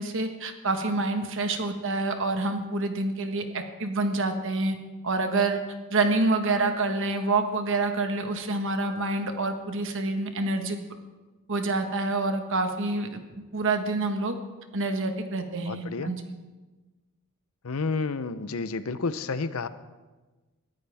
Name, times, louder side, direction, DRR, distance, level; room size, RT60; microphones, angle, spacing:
voice 1, 0.0-4.8 5.0-5.6 5.9-10.8 11.5-13.2 13.5-14.4 14.7-16.2, right 2 dB, 60° right, 6 dB, 1.4 m, -27 dB
voice 2, 15.7-16.1 17.6-19.7, left 4 dB, 70° left, 13 dB, 0.7 m, -30 dB
21.5 x 14.0 x 3.5 m, 1.2 s
head